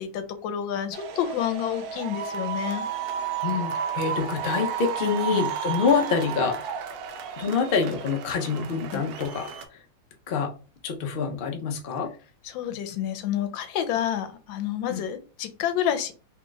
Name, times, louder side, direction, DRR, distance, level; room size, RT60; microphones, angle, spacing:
voice 1, 0.0-2.8 5.0-5.4 8.9-9.0 12.4-16.1, left 10 dB, 85° left, 8 dB, 1.4 m, -29 dB
sound 1, 0.9-9.7, right 8 dB, 70° right, 0.9 m, -32 dB
voice 2, 3.4-6.6 7.4-9.5 10.3-10.5 10.8-12.1 14.9-15.0, left 5 dB, 60° left, 2 dB, 0.5 m, -26 dB
3.2 x 2.3 x 3.8 m, 0.35 s
omnidirectional pair, 2.0 m